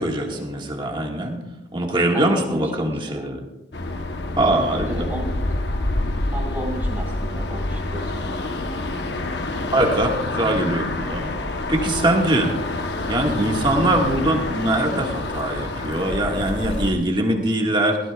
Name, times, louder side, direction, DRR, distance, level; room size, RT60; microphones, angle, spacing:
voice 1, 0.0-1.4 1.7-3.4 4.4-5.1 9.7-11.3 11.7-12.5 13.1-18.0, right 1 dB, 25° right, 1 dB, 1.6 m, -22 dB
voice 2, 2.1-3.3 4.5-5.3 5.9-8.8, right 1 dB, 10° right, -3 dB, 4.2 m, -34 dB
sound 1, 3.7-16.9, left 2 dB, 60° left, 0.9 m, -27 dB
19.0 x 15.0 x 2.3 m, 1.0 s
head